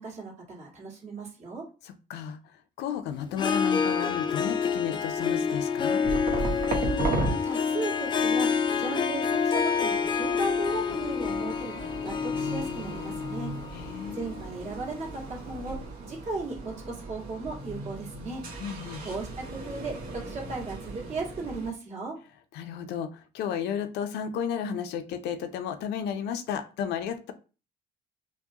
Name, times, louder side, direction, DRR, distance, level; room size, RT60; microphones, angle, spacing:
voice 1, 0.0-1.6 6.5-8.5 8.7-13.5 14.1-15.8 16.0-18.4 19.0-22.1, right 3 dB, 40° right, -2 dB, 1.7 m, -36 dB
voice 2, 1.8-6.1 13.7-14.2 18.6-19.0 22.5-27.3, left 8 dB, 80° left, 10 dB, 0.5 m, -33 dB
Harp, 3.3-15.2, left 6 dB, 25° left, 0.4 m, -28 dB
sound 1, 6.0-7.3 9.0-21.7, right 2 dB, 55° right, 1.1 m, -36 dB
4.6 x 2.2 x 2.8 m, 0.34 s
cardioid pair, 110°, 17 cm